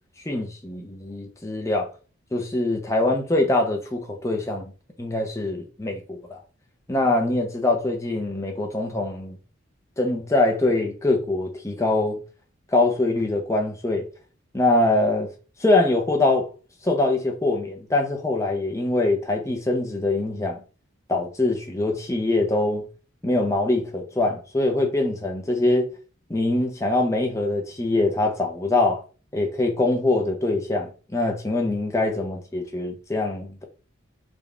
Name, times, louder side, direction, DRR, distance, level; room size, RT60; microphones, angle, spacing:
voice 1, 0.2-1.9 2.3-4.7 5.0-6.4 6.9-9.4 10.0-12.2 12.7-14.1 14.5-15.3 15.6-16.5 16.8-20.6 21.1-22.9 23.2-25.9 26.3-29.0 29.3-33.6, left 2 dB, 15° left, 0.6 m, -23 dB
3.9 x 2.3 x 3.3 m
head